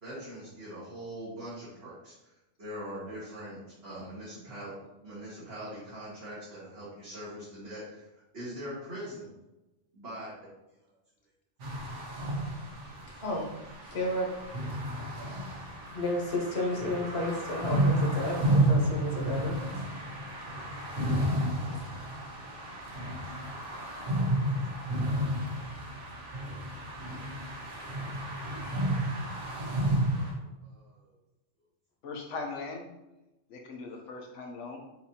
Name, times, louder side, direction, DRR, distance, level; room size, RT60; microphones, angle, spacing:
voice 1, 0.0-2.3 2.6-4.7 5.0-9.3 9.9-10.3 10.8-10.9 12.9-13.2 20.4-20.5 22.1-22.9 23.4-23.8 24.2-25.1 25.4-26.0 26.6-28.4 29.9-31.1 33.9-34.0, equal, 60° right, -11 dB, 1.7 m, -44 dB
sound 1, 11.6-30.3, right 1 dB, 80° right, 1.3 m, -31 dB
voice 2, 13.8-14.3 15.9-19.6, left 1 dB, 60° left, -2 dB, 1.3 m, -32 dB
voice 3, 32.0-32.8 33.5-34.8, left 3 dB, 80° left, 1 dB, 1.2 m, -39 dB
5.7 x 2.7 x 2.8 m, 0.99 s
omnidirectional pair, 1.2 m